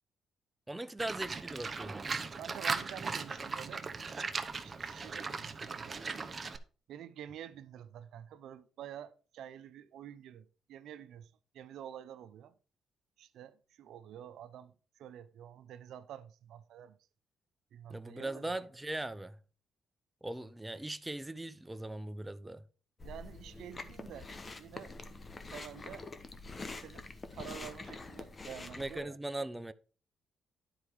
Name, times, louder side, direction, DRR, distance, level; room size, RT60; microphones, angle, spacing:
voice 1, 0.7-2.1 17.9-19.4 20.2-22.6 28.8-29.7, right 1 dB, 10° right, 0.5 m, -39 dB
Livestock farm animals working animals, 1.0-6.6, right 4 dB, 35° right, 0.9 m, -38 dB
voice 2, 2.4-4.0 4.6-6.0 6.9-12.5 13.2-17.0 17.7-18.5 23.0-24.3 24.6-24.9 25.5-26.1 26.8-29.2, right 10 dB, 75° right, 0.6 m, -48 dB
Chewing mastication, 23.0-29.0, left 3 dB, 30° left, 1.0 m, -46 dB
10.5 x 4.7 x 4.7 m
cardioid pair, 90°, 0 cm